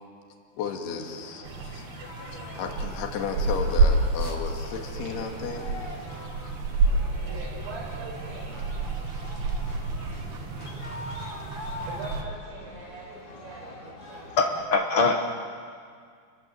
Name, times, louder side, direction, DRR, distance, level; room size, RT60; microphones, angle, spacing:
voice 1, 0.6-5.7, left 6 dB, 65° left, 2 dB, 4.1 m, -34 dB
sound 1, 0.9-14.6, left 2 dB, 40° left, 4.7 m, -43 dB
sound 2, 1.5-12.2, right 3 dB, 70° right, 3.6 m, -29 dB
voice 2, 7.2-8.6 11.9-14.7, right 3 dB, 85° right, -4 dB, 7.1 m, -42 dB
voice 3, 14.4-15.2, left 4 dB, 85° left, 2 dB, 1.2 m, -22 dB
30.0 x 22.5 x 7.9 m, 2.1 s
omnidirectional pair, 5.0 m